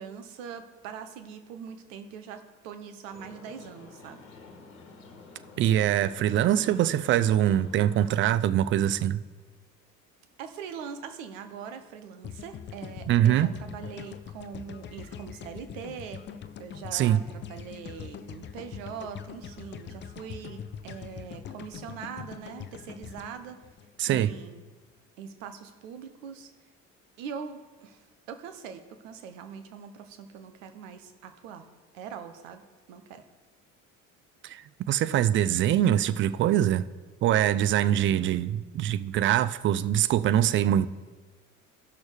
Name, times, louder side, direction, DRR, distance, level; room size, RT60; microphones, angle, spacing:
voice 1, 0.0-4.2 10.4-16.2 16.6-23.6 24.1-24.6 25.2-26.5 27.2-31.7 31.9-32.6 32.9-33.2, right 7 dB, 70° right, 0.9 m, -42 dB
sound 1, 3.1-8.1, left 4 dB, 70° left, 1.3 m, -49 dB
voice 2, 5.6-9.2 13.1-13.5 16.9-17.2 24.0-24.3 34.4-34.6 34.9-36.8 37.2-40.9, right 11 dB, 30° right, 0.4 m, -23 dB
sound 2, 12.2-24.5, left 8 dB, 30° left, 0.5 m, -43 dB
16.0 x 6.1 x 3.3 m
hypercardioid pair, 60°, 40 cm